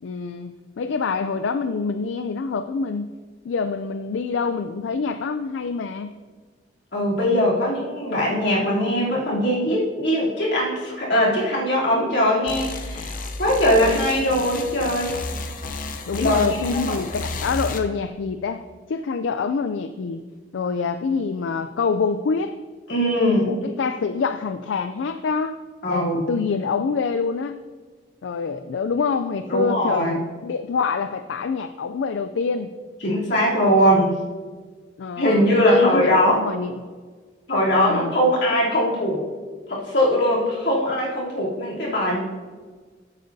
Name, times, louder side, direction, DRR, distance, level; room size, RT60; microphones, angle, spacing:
voice 1, 0.0-3.1 3.4-6.1 16.1-20.2 20.5-22.5 23.5-25.6 25.9-27.6 28.2-32.7 35.0-36.8 37.8-38.1, left 5 dB, 85° left, 10 dB, 0.4 m, -26 dB
voice 2, 6.9-13.1 13.4-15.1 16.1-17.0 22.9-23.5 25.8-26.4 29.5-30.2 33.0-34.2 35.2-36.4 37.5-39.2 39.7-42.2, equal, 70° left, -6 dB, 3.1 m, -21 dB
sound 1, 12.5-17.8, left 3 dB, 45° left, 0.7 m, -32 dB
13.5 x 8.2 x 2.7 m, 1.5 s
head